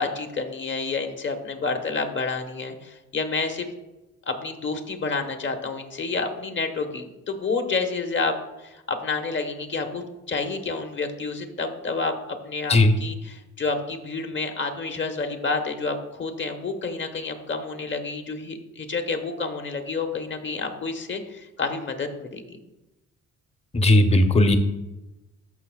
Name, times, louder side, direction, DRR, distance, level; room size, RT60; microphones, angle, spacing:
voice 1, 0.0-3.7 4.3-12.1 12.4-22.6, left 4 dB, 40° left, 5 dB, 1.2 m, -29 dB
voice 2, 23.7-24.6, left 1 dB, 20° left, 6 dB, 0.8 m, -17 dB
13.5 x 5.6 x 2.4 m, 1.0 s
cardioid pair, 90°, 30 cm